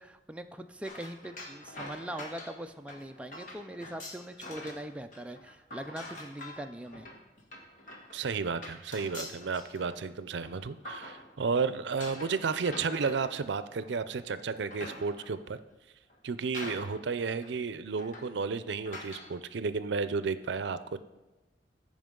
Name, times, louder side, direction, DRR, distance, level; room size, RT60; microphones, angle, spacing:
voice 1, 0.0-7.1, right 1 dB, 5° right, 6 dB, 0.3 m, -41 dB
sound 1, 0.8-4.9 5.1-11.5 12.0-14.0 14.5-15.4 16.1-16.2 16.5-17.1 17.4-17.5 18.0-18.4 18.9-19.3, left 1 dB, 45° left, 1.4 m, -45 dB
voice 2, 8.1-15.6 16.2-21.0, right 5 dB, 80° right, 13 dB, 0.5 m, -32 dB
14.5 x 5.1 x 3.8 m, 1.1 s
head